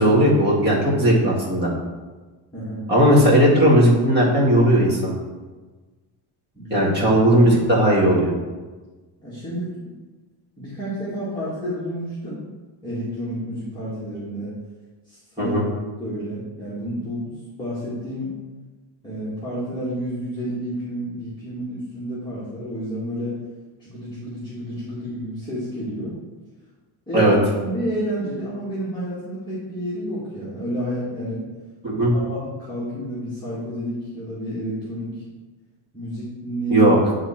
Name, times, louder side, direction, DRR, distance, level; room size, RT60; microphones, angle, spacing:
voice 1, 0.0-1.7 2.9-5.2 6.7-8.3 15.4-15.7 27.1-27.4 31.8-32.1 36.7-37.0, right 1 dB, 20° right, -5 dB, 2.3 m, -17 dB
voice 2, 2.5-2.8 6.5-6.9 9.2-9.9 10.6-12.4 12.8-14.5 15.1-15.6 16.0-18.3 19.0-23.4 23.8-26.2 27.1-27.4 27.6-31.4 32.1-35.2 35.9-36.9, equal, 10° left, -11 dB, 1.8 m, -30 dB
9.8 x 3.8 x 4.3 m, 1.3 s
cardioid pair, 155°, 46 cm